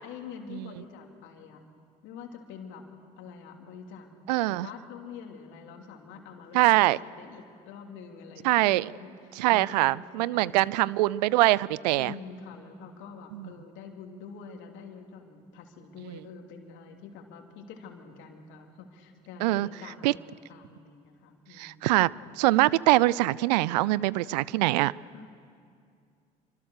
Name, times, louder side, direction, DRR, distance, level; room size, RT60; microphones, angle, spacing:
voice 1, 0.0-1.6 2.0-2.8 3.2-4.1 4.4-10.6 11.9-21.8 25.1-25.3, left 6 dB, 65° left, 3 dB, 3.1 m, -46 dB
voice 2, 4.3-4.7 6.5-7.0 8.4-8.9 9.4-12.1 19.4-19.7 20.0-20.1 21.6-22.1 22.4-24.9, right 18 dB, 80° right, 23 dB, 0.5 m, -23 dB
27.0 x 25.0 x 6.6 m, 2.4 s
hypercardioid pair, 55°, 21 cm